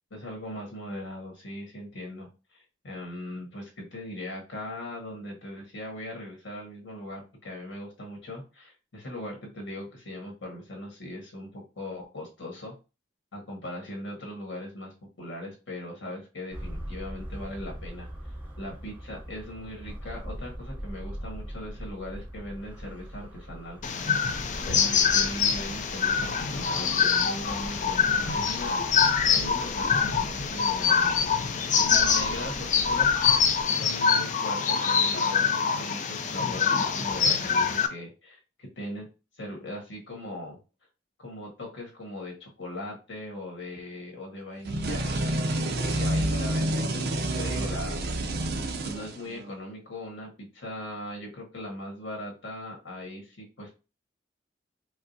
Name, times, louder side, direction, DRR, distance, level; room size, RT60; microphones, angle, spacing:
voice 1, 0.1-2.3 2.5-12.7 13.3-18.1 18.6-23.8 24.6-28.8 29.3-31.3 31.7-39.1 39.4-40.6 41.2-48.0 48.8-53.8, left 1 dB, 85° left, 0 dB, 1.4 m, -39 dB
sound 1, 16.5-33.6, equal, 10° right, 0.8 m, -42 dB
sound 2, 23.8-37.9, left 6 dB, 40° left, 0.4 m, -25 dB
sound 3, 44.6-49.5, right 1 dB, 60° right, 0.5 m, -28 dB
4.7 x 2.0 x 2.7 m, 0.30 s
head